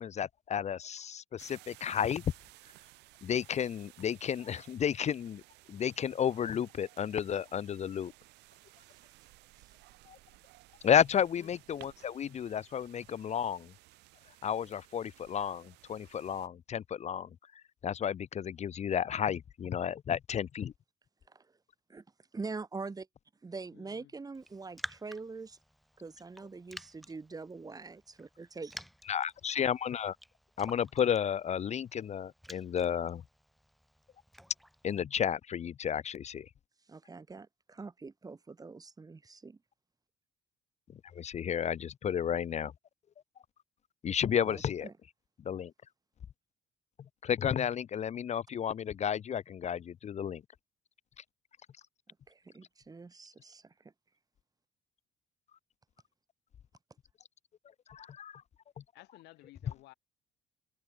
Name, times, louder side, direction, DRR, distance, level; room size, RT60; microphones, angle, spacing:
voice 1, 0.0-2.2 3.2-5.4 5.7-8.1 10.1-10.2 10.8-13.7 14.4-17.3 17.8-20.7 29.1-30.2 30.6-33.2 34.8-36.5 41.1-42.7 44.0-44.9 45.4-45.7 47.2-50.4 57.9-58.4, left 8 dB, 40° left, 0.8 m, -32 dB
sound 1, 1.4-16.5, right 20 dB, 90° right, 7.7 m, -58 dB
voice 2, 22.3-23.1 23.4-25.6 26.0-28.8 36.9-39.6 44.4-44.9 52.3-53.9, right 4 dB, 20° right, 5.6 m, -44 dB
voice 3, 23.7-24.1 58.9-59.9, left 19 dB, 85° left, 7.8 m, -55 dB
Raindrop, 24.3-35.0, equal, ahead, 5.1 m, -51 dB
cardioid pair, 110°, 17 cm